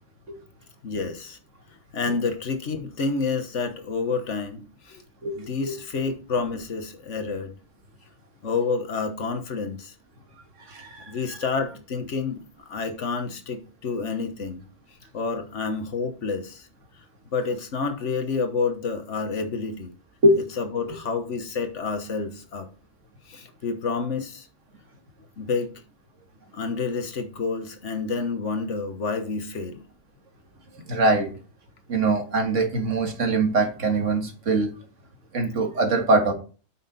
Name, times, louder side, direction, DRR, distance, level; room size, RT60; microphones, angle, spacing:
voice 1, 0.8-1.4 1.9-5.0 5.3-7.5 8.4-9.9 11.1-14.6 15.1-16.7 17.3-19.9 20.6-22.7 23.3-24.5 25.4-25.8 26.5-29.8, left 4 dB, 70° left, 1.5 m, -29 dB
voice 2, 5.2-5.7 10.7-11.4 20.2-20.4 30.9-31.3 31.9-34.7 35.3-36.3, right 2 dB, 75° right, 2.0 m, -23 dB
8.4 x 5.9 x 4.1 m
omnidirectional pair, 1.3 m